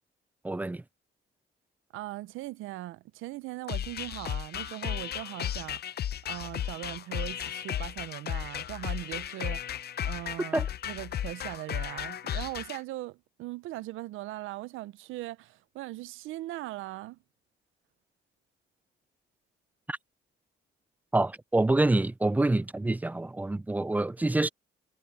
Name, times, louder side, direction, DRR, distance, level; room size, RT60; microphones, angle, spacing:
voice 1, 0.4-0.8 10.5-10.7 19.9-20.0 21.1-24.5, right 2 dB, 10° right, 0.4 m, -26 dB
voice 2, 1.9-6.0 6.3-17.2, right 16 dB, 90° right, 0.6 m, -40 dB
sound 1, 3.7-12.8, left 10 dB, 55° left, 0.7 m, -35 dB
cardioid pair, 90°, 20 cm